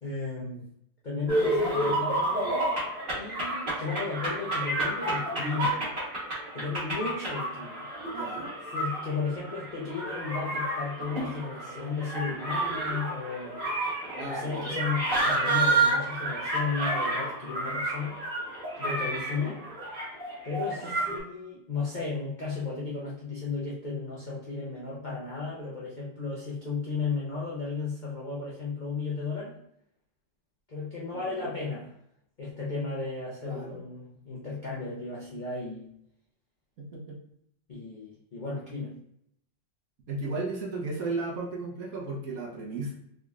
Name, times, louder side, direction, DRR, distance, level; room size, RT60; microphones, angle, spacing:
voice 1, 0.0-0.6 1.0-2.7 3.1-5.8 6.5-7.9 8.7-13.5 14.2-18.2 18.8-19.6 20.4-29.5 30.7-31.9 32.4-35.9 37.7-38.9, left 4 dB, 80° left, -6 dB, 0.4 m, -34 dB
sound 1, 1.3-21.2, right 2 dB, 30° right, 1.4 m, -30 dB
voice 2, 8.1-8.5 14.2-14.7 19.4-19.6 20.8-20.9 31.1-31.5 33.4-33.8 36.8-37.2 40.1-42.9, right 3 dB, 60° right, -2 dB, 1.1 m, -35 dB
3.7 x 3.2 x 2.4 m, 0.75 s
omnidirectional pair, 2.0 m